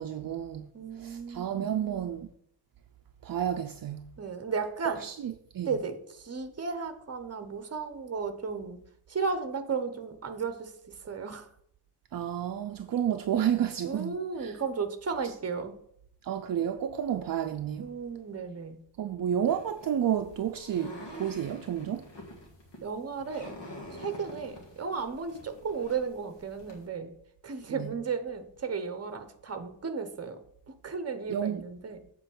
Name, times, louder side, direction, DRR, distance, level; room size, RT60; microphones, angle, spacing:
voice 1, 0.0-0.7 1.0-2.3 3.2-4.1 5.0-5.7 12.1-14.6 15.2-15.3 16.2-17.9 19.0-22.0 27.7-27.9 31.3-31.6, right 9 dB, 55° right, 0.5 m, -31 dB
voice 2, 0.7-1.7 4.2-5.0 5.7-8.8 9.1-11.5 13.8-15.8 17.8-18.8 22.8-23.6 23.9-27.1 27.4-32.0, right 5 dB, 35° right, 0.9 m, -34 dB
sound 1, 19.5-26.9, left 1 dB, 80° left, 2.2 m, -47 dB
8.0 x 4.6 x 7.1 m
wide cardioid pair, 160°, 42 cm